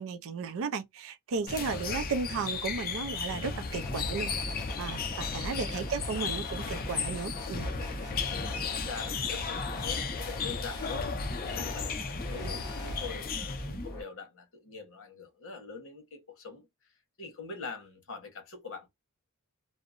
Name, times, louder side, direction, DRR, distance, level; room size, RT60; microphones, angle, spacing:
voice 1, 0.0-4.3 4.8-7.7, right 5 dB, 65° right, 0.4 m, -34 dB
sound 1, 1.5-13.9, left 5 dB, 40° left, 0.5 m, -35 dB
voice 2, 1.6-2.0 5.1-5.8 8.3-11.1 11.5-16.7 17.2-18.9, left 4 dB, 65° left, 1.1 m, -44 dB
sound 2, 3.7-14.0, left 1 dB, 15° left, 1.1 m, -40 dB
2.6 x 2.1 x 2.5 m
head